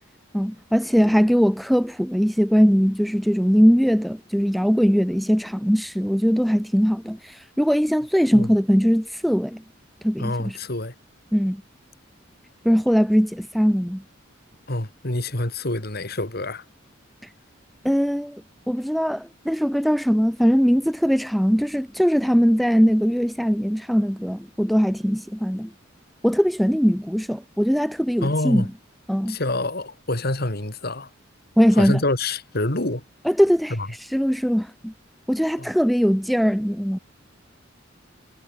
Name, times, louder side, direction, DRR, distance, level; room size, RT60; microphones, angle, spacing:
voice 1, 0.3-9.6 10.0-10.6 11.3-11.6 12.6-14.0 17.8-18.4 18.7-25.7 26.2-28.7 29.1-29.4 31.6-32.0 33.3-33.8 34.1-34.9 35.3-37.0, equal, ahead, 0.3 m, -20 dB
voice 2, 10.2-10.9 14.7-16.6 28.2-28.7 29.3-31.1 31.7-33.0 33.7-33.9 35.6-35.7, left 2 dB, 50° left, 3.3 m, -26 dB
head